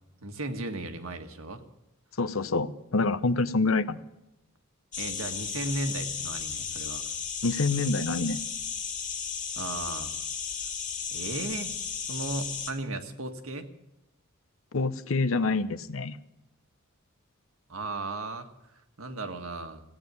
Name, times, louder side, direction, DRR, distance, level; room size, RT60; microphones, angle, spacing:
voice 1, 0.2-1.6 5.0-7.1 9.6-10.1 11.1-13.7 17.7-18.5 19.0-19.8, right 2 dB, 85° right, 6 dB, 1.6 m, -35 dB
voice 2, 2.2-4.0 7.4-8.4 14.7-16.2, left 3 dB, 70° left, 14 dB, 0.8 m, -26 dB
sound 1, 4.9-12.7, left 6 dB, 40° left, 2.0 m, -34 dB
16.0 x 9.0 x 9.4 m, 0.91 s
head